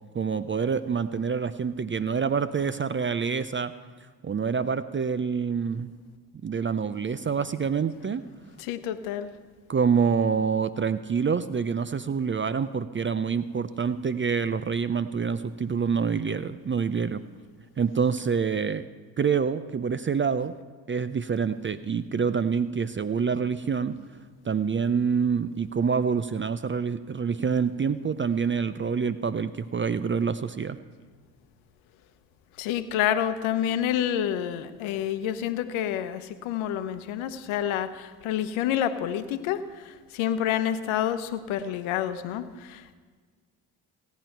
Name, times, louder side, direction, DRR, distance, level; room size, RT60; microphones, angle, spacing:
voice 1, 0.1-3.7 4.2-5.9 6.4-8.2 9.7-17.2 17.8-18.9 19.2-20.5 20.9-24.0 24.4-30.8, right 6 dB, 25° right, 14 dB, 0.5 m, -26 dB
voice 2, 8.6-9.3 32.6-43.0, left 10 dB, 75° left, 12 dB, 0.9 m, -28 dB
17.0 x 9.3 x 4.5 m, 1.5 s
hypercardioid pair, 50°, 48 cm